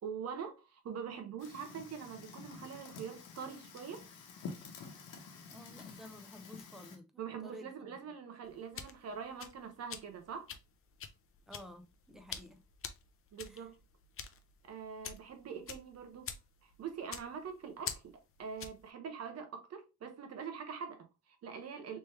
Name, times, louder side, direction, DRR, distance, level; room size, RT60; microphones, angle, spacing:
voice 1, 0.0-4.0 7.2-10.5 13.3-13.8 14.6-16.3 16.6-22.0, right 6 dB, 55° right, 1.0 m, -44 dB
Fire, 1.4-7.0, left 5 dB, 85° left, 1.0 m, -50 dB
voice 2, 5.5-7.9 11.5-12.6 13.5-13.7, left 1 dB, ahead, 0.7 m, -52 dB
sound 1, 8.4-18.9, left 7 dB, 45° left, 0.6 m, -47 dB
3.3 x 3.1 x 3.1 m
cardioid pair, 90°, 30 cm